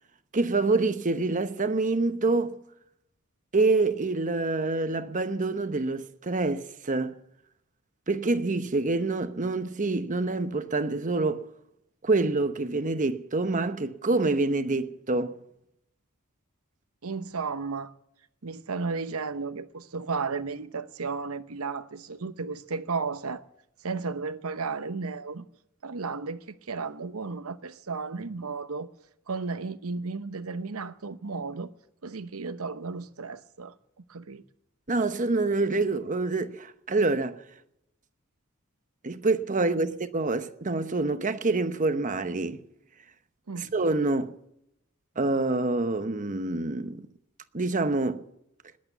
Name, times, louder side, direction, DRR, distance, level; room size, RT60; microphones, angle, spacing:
voice 1, 0.3-2.6 3.5-7.1 8.1-11.4 12.0-15.4 34.9-37.4 39.0-42.6 43.6-44.3 45.2-47.1 47.5-48.2, right 3 dB, 35° right, 1.0 m, -26 dB
voice 2, 17.0-17.9 18.4-23.4 23.8-25.4 25.8-28.9 29.3-31.7 32.0-33.7 34.1-34.4 39.7-39.9 43.5-43.7, right 4 dB, 85° right, 0.9 m, -34 dB
20.0 x 8.6 x 8.2 m
head